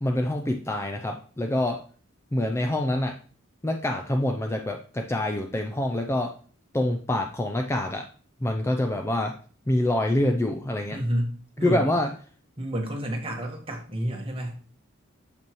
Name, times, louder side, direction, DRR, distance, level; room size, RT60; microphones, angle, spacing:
voice 1, 0.0-1.8 2.3-3.2 3.6-6.3 6.7-8.0 8.4-9.3 9.7-11.0 11.6-12.1, left 1 dB, 15° left, 4 dB, 0.4 m, -26 dB
voice 2, 10.9-12.0 12.6-14.6, equal, 25° right, 1 dB, 1.3 m, -30 dB
6.9 x 5.4 x 3.0 m, 0.41 s
head